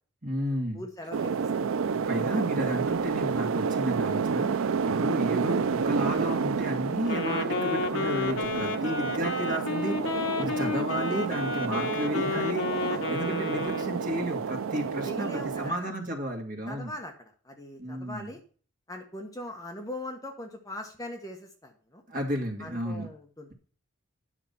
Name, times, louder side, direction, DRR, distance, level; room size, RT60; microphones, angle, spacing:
voice 1, 0.2-0.8 1.9-16.9 17.8-18.3 22.1-23.1, equal, 40° right, 2 dB, 2.3 m, -32 dB
voice 2, 0.7-1.3 2.1-2.4 12.9-13.1 15.0-15.9 16.7-18.4 18.9-22.0 22.6-23.5, left 1 dB, 15° left, 3 dB, 1.2 m, -41 dB
sound 1, 1.1-15.7, right 5 dB, 85° right, 0.4 m, -30 dB
Wind instrument woodwind instrument, 7.0-14.2, left 3 dB, 75° left, 1.1 m, -31 dB
10.0 x 6.0 x 5.6 m, 0.41 s
head